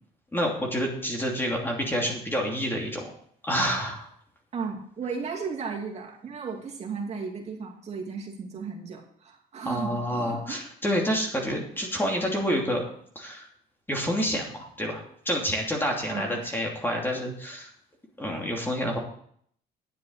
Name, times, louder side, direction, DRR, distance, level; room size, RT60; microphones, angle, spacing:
voice 1, 0.3-3.1 3.4-4.1 9.6-12.8 13.1-13.5 13.9-17.7 18.2-19.0, equal, 10° left, 0 dB, 2.8 m, -28 dB
voice 2, 4.5-10.6 16.1-16.5, right 5 dB, 40° right, -1 dB, 2.6 m, -35 dB
10.0 x 7.4 x 6.4 m, 0.63 s
cardioid pair, 110°, 17 cm